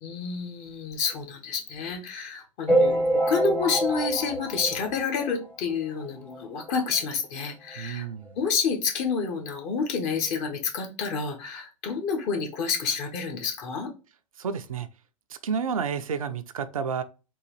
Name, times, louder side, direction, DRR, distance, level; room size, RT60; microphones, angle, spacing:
voice 1, 0.0-8.1 8.3-13.9, left 5 dB, 40° left, 1.1 m, -29 dB
sound 1, 2.7-5.5 6.0-6.1 6.3-6.4 6.7-6.8 7.7-7.8 8.3-8.4, right 1 dB, 10° left, 0.8 m, -25 dB
voice 2, 7.8-8.3 14.4-14.9 15.3-17.0, right 6 dB, 80° right, 0.5 m, -30 dB
3.8 x 2.4 x 3.0 m
hypercardioid pair, 100°, 18 cm